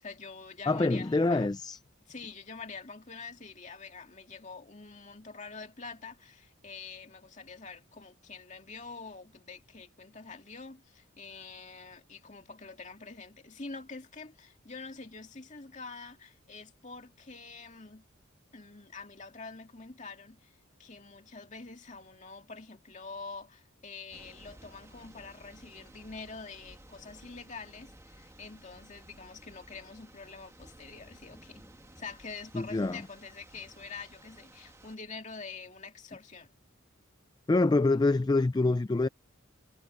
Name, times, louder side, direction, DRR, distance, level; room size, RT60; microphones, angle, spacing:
voice 1, 0.0-1.5 2.1-18.1 18.5-20.5 20.8-31.7 32.0-36.5, left 4 dB, 35° left, 2.3 m, -46 dB
voice 2, 0.7-1.8 32.5-33.0 37.5-39.1, left 2 dB, 20° left, 0.3 m, -26 dB
Thunder / Rain, 24.1-35.0, right 1 dB, 15° right, 1.5 m, -55 dB
head